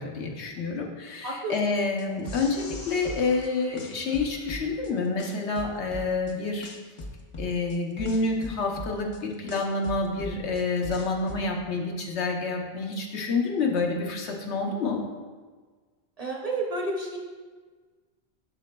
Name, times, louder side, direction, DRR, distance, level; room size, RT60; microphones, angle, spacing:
voice 1, 0.0-6.7 7.4-15.0, left 3 dB, 90° left, 1 dB, 1.1 m, -28 dB
sound 1, 2.0-3.5 3.8-4.9 5.2-6.3 6.6-9.2 9.5-11.4, left 1 dB, 40° left, 0.5 m, -39 dB
sound 2, 2.2-4.9, left 3 dB, 65° left, 1.0 m, -48 dB
voice 2, 16.2-17.2, right 2 dB, 40° right, -1 dB, 0.7 m, -30 dB
11.0 x 4.1 x 2.2 m, 1.4 s
omnidirectional pair, 1.1 m